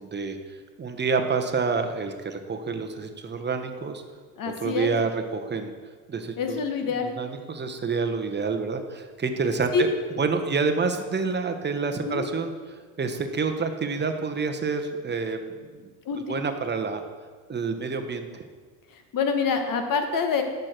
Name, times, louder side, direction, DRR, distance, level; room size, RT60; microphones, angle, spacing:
voice 1, 0.0-4.0 4.6-5.7 6.1-6.6 7.2-9.9 10.2-15.9 16.3-17.0 17.5-18.5, right 4 dB, 25° right, 7 dB, 0.9 m, -28 dB
voice 2, 4.4-4.9 6.4-7.1 9.7-9.8 12.1-12.3 16.0-16.3 18.9-20.4, left 5 dB, 50° left, 5 dB, 1.4 m, -26 dB
8.7 x 6.5 x 4.4 m, 1.5 s
supercardioid pair, 90°, 43 cm